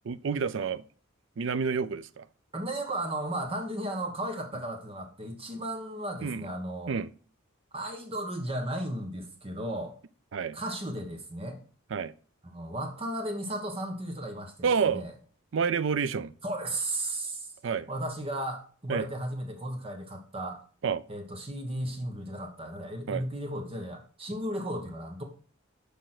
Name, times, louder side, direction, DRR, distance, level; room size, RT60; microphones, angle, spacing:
voice 1, 0.0-0.8 1.4-2.3 6.2-6.5 6.9-7.1 10.3-10.6 11.9-12.1 14.6-15.0 15.5-16.3 17.6-17.9 18.9-19.1 20.8-21.0 23.1-23.2, right 6 dB, 60° right, 0.4 m, -29 dB
voice 2, 2.5-6.9 7.7-9.9 10.5-11.6 12.4-15.1 16.4-17.5 17.9-20.6 21.1-25.2, right 1 dB, 25° right, 1.3 m, -35 dB
6.7 x 5.1 x 5.9 m
head